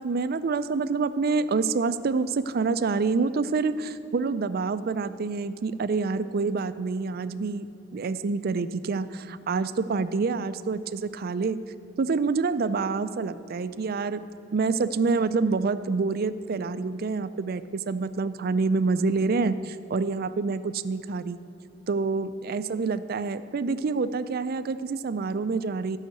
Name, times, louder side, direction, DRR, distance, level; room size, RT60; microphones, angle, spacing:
voice 1, 0.0-7.7 7.9-11.6 12.0-14.2 14.5-21.4 21.9-26.0, right 4 dB, 50° right, 13 dB, 0.4 m, -27 dB
13.0 x 5.7 x 7.7 m, 2.7 s
head